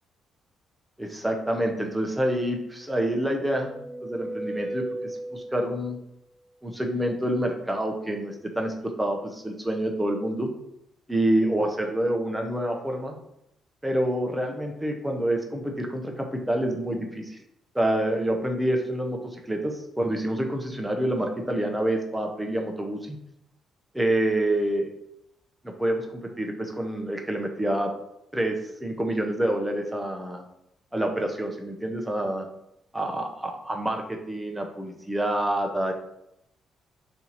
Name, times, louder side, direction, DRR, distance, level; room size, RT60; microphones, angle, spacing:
voice 1, 1.0-3.7 4.0-6.0 6.6-10.5 11.1-13.2 13.8-17.4 17.7-23.2 23.9-24.9 25.6-27.9 28.3-30.4 30.9-32.5 32.9-35.9, right 1 dB, 5° right, 2 dB, 0.7 m, -27 dB
sound 1, 3.1-5.9, right 1 dB, 35° right, 0.7 m, -36 dB
4.4 x 2.8 x 4.1 m, 0.82 s
cardioid pair, 90°, 0 cm